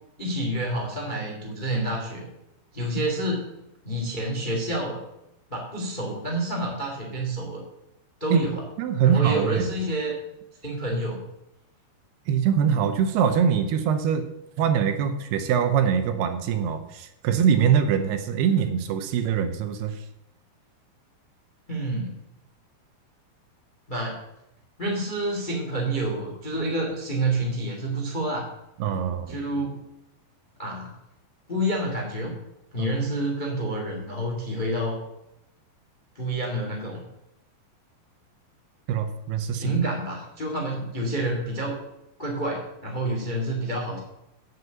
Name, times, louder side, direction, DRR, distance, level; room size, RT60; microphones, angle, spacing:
voice 1, 0.2-2.3 2.7-3.5 3.8-5.0 5.5-7.6 8.2-8.6 9.0-10.1 10.6-11.2 21.7-22.1 23.9-24.1 24.8-28.4 29.3-29.8 30.6-30.9 31.5-32.3 32.7-35.0 36.1-37.0 39.5-41.8 42.2-44.0, right 1 dB, 25° left, 0 dB, 0.9 m, -28 dB
voice 2, 8.8-9.7 12.3-14.3 14.6-20.0 28.8-29.4 32.8-32.9 38.9-39.7, right 7 dB, 75° right, 8 dB, 2.7 m, -23 dB
8.0 x 7.6 x 7.7 m, 0.87 s
omnidirectional pair, 4.9 m